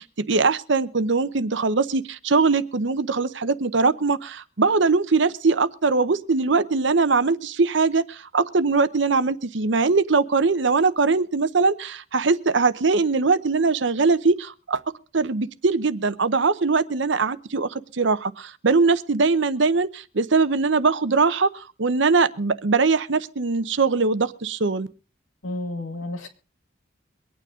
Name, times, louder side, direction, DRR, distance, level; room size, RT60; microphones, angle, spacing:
voice 1, 0.0-14.8 15.1-24.9, right 4 dB, 65° right, 0.8 m, -21 dB
voice 2, 25.4-26.3, left 2 dB, 90° left, 2.3 m, -31 dB
23.5 x 9.3 x 3.7 m
head